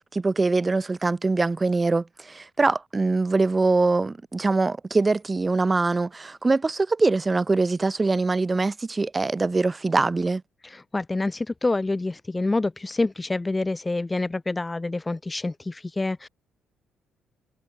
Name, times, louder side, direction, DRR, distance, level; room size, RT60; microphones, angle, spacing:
voice 1, 0.1-10.4, right 3 dB, 20° right, 1.1 m, -23 dB
voice 2, 10.6-16.3, left 2 dB, 15° left, 0.5 m, -27 dB
cardioid pair, 125°, 0 cm